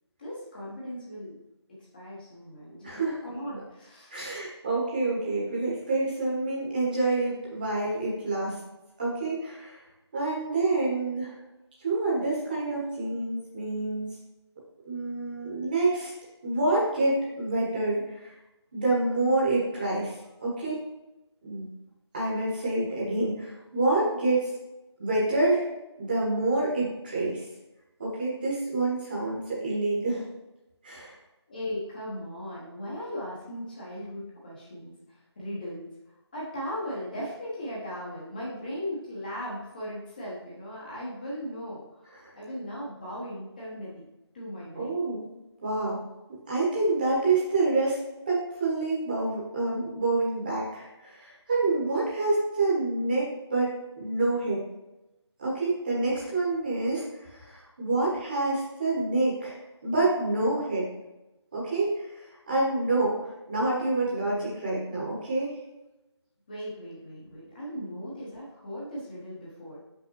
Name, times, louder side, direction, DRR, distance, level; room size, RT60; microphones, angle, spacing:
voice 1, 0.2-1.3 1.9-4.1 31.5-35.9 36.3-44.0 44.3-45.0 66.5-69.8, equal, 20° left, -7 dB, 1.0 m, -38 dB
voice 2, 2.8-3.2 4.1-8.6 9.0-9.8 10.1-11.3 11.8-14.0 14.8-16.1 16.4-18.3 18.7-20.8 21.4-21.7 22.1-24.5 25.0-25.6 26.0-27.4 28.0-30.2 30.8-31.1 42.1-42.3 44.7-45.3 45.6-46.0 46.5-48.0 48.3-54.6 55.4-60.9 61.5-63.2 63.5-65.6, right 2 dB, 20° right, -6 dB, 1.3 m, -27 dB
6.2 x 5.5 x 3.1 m, 0.98 s
figure-of-eight pair, 165°, 15 cm